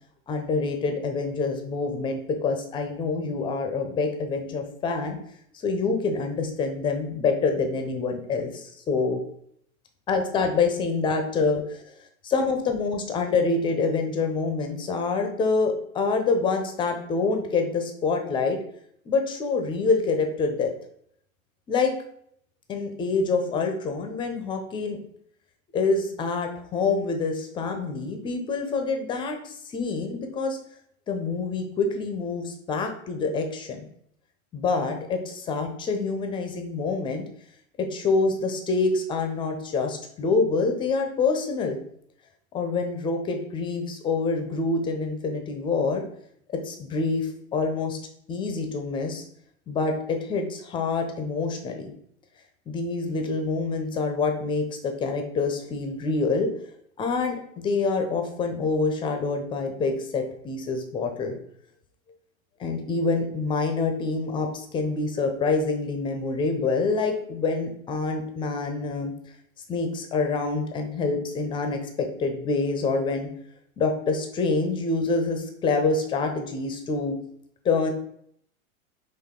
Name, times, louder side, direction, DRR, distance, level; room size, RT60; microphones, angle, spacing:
voice 1, 0.3-5.2 5.6-9.2 10.1-11.8 12.2-18.6 19.1-20.7 21.7-21.9 22.7-25.0 25.7-30.6 31.1-33.8 34.5-37.2 37.8-41.8 42.5-46.0 46.6-48.0 48.3-49.2 49.7-51.9 52.7-56.5 57.0-57.4 57.6-61.4 62.6-69.1 69.7-73.3 73.8-77.2 77.6-77.9, left 4 dB, 15° left, 5 dB, 0.4 m, -26 dB
4.7 x 3.1 x 3.6 m, 0.67 s
hypercardioid pair, 110°, 42 cm